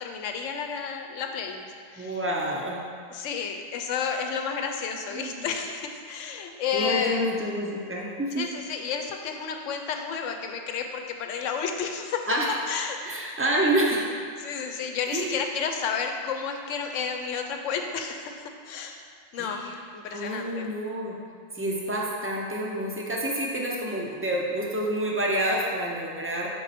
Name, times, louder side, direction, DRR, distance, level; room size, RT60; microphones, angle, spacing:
voice 1, 0.0-2.2 3.1-7.3 8.4-12.3 12.7-13.0 14.4-19.1 19.3-20.7, left 6 dB, 70° left, 4 dB, 0.9 m, -31 dB
voice 2, 2.0-2.8 5.1-5.5 6.7-8.5 12.3-12.5 13.0-14.1 15.1-15.4 19.3-19.8 20.1-21.2 21.5-26.5, right 1 dB, 20° right, -3 dB, 0.3 m, -28 dB
6.2 x 4.3 x 4.1 m, 2.2 s
omnidirectional pair, 1.4 m